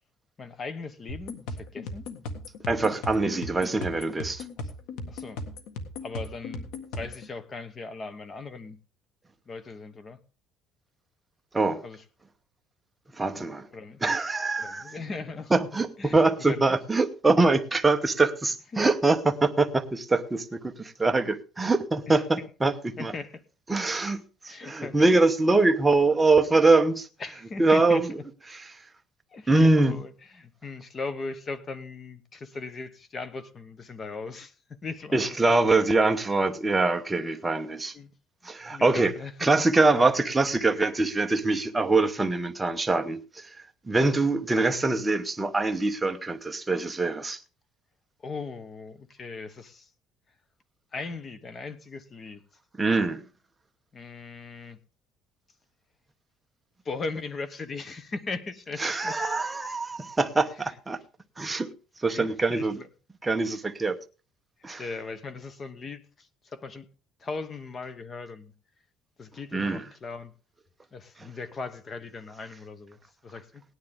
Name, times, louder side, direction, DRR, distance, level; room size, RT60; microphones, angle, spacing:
voice 1, 0.4-2.1 4.6-4.7 5.1-5.4 6.0-6.7 6.9-8.8 9.5-10.2 11.8-12.0 13.7-14.0 14.6-15.6 16.0-16.7 18.7-18.8 22.1-22.5 23.0-23.4 24.5-25.0 27.2-28.0 29.3-35.2 37.9-38.1 38.4-39.5 43.9-44.1 48.2-49.9 50.9-52.4 53.9-54.8 56.8-59.2 61.5-61.6 62.1-62.9 64.8-66.9 67.2-68.5 69.2-70.3 70.9-73.6, left 4 dB, 25° left, 0.9 m, -38 dB
sound 1, 1.1-7.3, left 2 dB, 90° left, 1.7 m, -37 dB
voice 2, 2.7-4.4 11.5-11.8 13.1-13.7 14.0-15.0 15.5-23.1 23.7-27.1 27.6-28.2 28.5-28.9 29.5-30.0 35.1-38.0 38.4-39.1 39.4-47.4 52.8-53.2 58.8-61.0 61.4-61.7 62.0-62.8 63.2-64.0 64.6-64.8 69.5-69.8, right 3 dB, 10° right, 0.9 m, -24 dB
17.5 x 10.0 x 3.6 m
cardioid pair, 155°, 0 cm